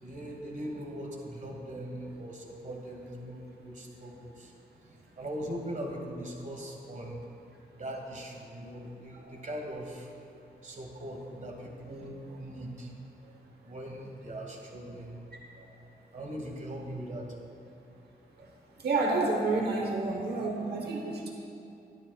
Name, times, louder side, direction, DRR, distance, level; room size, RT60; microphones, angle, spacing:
voice 1, 0.0-4.5 5.2-7.2 7.7-10.1 10.6-12.9 13.6-15.2 16.1-17.3, right 1 dB, 50° right, 0 dB, 1.4 m, -40 dB
voice 2, 18.8-21.3, right 3 dB, 80° right, 0 dB, 1.0 m, -29 dB
12.5 x 10.5 x 2.3 m, 2.6 s
wide cardioid pair, 105°, 17 cm